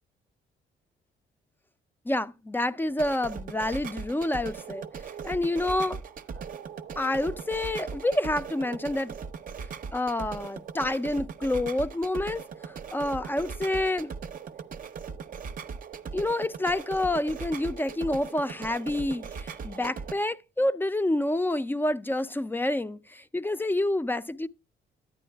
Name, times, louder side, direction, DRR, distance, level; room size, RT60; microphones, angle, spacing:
voice 1, 2.1-4.9 5.2-6.0 7.0-9.1 9.9-14.1 16.1-24.5, left 1 dB, 10° left, 0.3 m, -28 dB
sound 1, 2.9-20.1, right 6 dB, 40° right, 0.6 m, -39 dB
10.0 x 9.2 x 2.2 m
cardioid pair, 80°, 20 cm